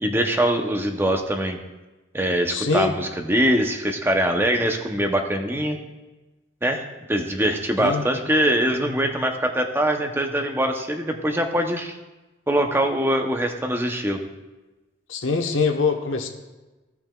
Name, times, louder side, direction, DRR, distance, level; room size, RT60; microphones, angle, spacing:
voice 1, 0.0-1.6 2.1-5.8 6.6-6.8 7.1-12.0 12.5-14.2, right 1 dB, 10° right, 4 dB, 0.7 m, -23 dB
voice 2, 2.5-2.9 7.8-8.0 15.1-16.3, left 4 dB, 85° left, 4 dB, 1.0 m, -23 dB
16.0 x 6.0 x 2.3 m, 1.1 s
head